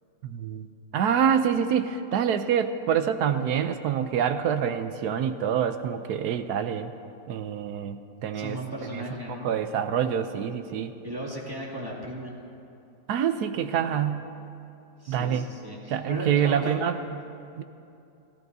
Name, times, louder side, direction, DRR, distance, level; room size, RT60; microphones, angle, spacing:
voice 1, 0.2-0.7 0.9-6.9 7.3-8.6 8.9-9.0 9.4-10.9 13.1-14.3 15.1-15.5 15.9-17.0 17.6-17.7, right 8 dB, 70° right, 9 dB, 1.1 m, -26 dB
voice 2, 8.3-9.5 11.0-12.3 15.0-16.8, equal, 15° right, -4 dB, 2.2 m, -36 dB
29.5 x 13.5 x 2.7 m, 2.7 s
omnidirectional pair, 1.9 m